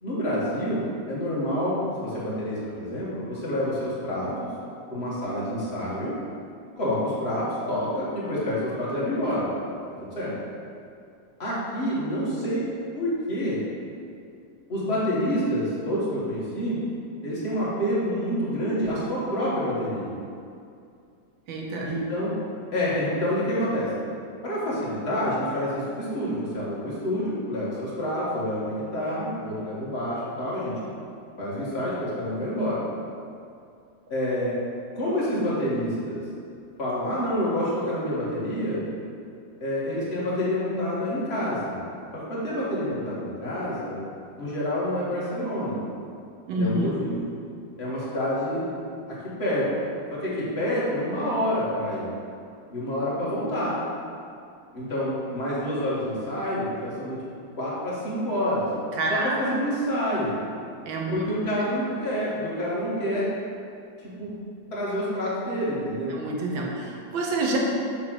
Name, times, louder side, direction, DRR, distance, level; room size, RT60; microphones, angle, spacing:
voice 1, 0.0-4.5 4.9-6.1 6.8-9.5 10.2-10.3 11.4-12.7 12.9-13.6 14.7-16.8 17.2-20.1 21.8-22.3 22.7-23.9 24.4-30.9 31.4-32.8 34.1-34.5 34.9-36.2 36.8-38.8 39.6-41.8 42.1-44.0 44.4-45.8 46.6-47.3 47.8-48.6 49.1-49.7 50.1-52.1 52.7-53.8 54.7-57.2 57.6-58.7 59.1-60.3 61.1-63.3 64.2-64.3 64.7-66.2, equal, 35° left, -8 dB, 1.8 m, -28 dB
voice 2, 21.5-21.9 46.5-46.9 59.0-59.4 60.9-61.2 66.1-67.6, right 2 dB, 85° right, -1 dB, 1.7 m, -27 dB
6.4 x 3.4 x 6.0 m, 2.4 s
omnidirectional pair, 2.0 m